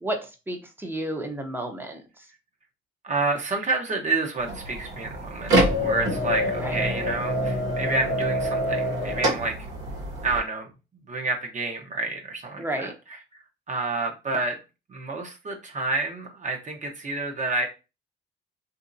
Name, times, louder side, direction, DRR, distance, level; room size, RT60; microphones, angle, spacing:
voice 1, 0.0-2.2 6.4-6.8 12.6-12.9, right 1 dB, 10° right, 4 dB, 0.8 m, -32 dB
voice 2, 3.0-9.7 10.2-10.7 11.1-13.2 13.7-14.6 14.9-17.7, right 3 dB, 40° right, 2 dB, 0.9 m, -29 dB
sound 1, 4.4-10.4, equal, 80° right, 1.4 m, -26 dB
2.8 x 2.8 x 2.6 m, 0.29 s
cardioid pair, 90°, 20 cm